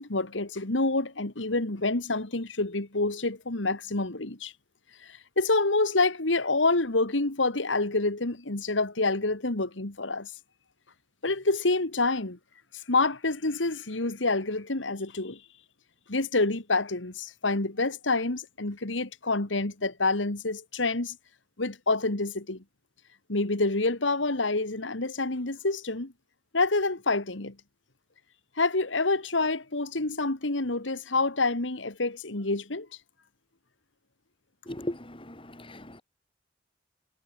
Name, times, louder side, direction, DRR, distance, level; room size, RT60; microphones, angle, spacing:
voice 1, 0.0-4.5 5.1-10.3 11.2-12.4 12.9-15.4 16.1-21.2 21.6-22.6 23.3-26.1 26.5-27.5 28.6-32.9, left 3 dB, 85° left, 2.2 m, -27 dB
voice 2, 34.7-36.0, left 1 dB, 30° left, 2.8 m, -38 dB
head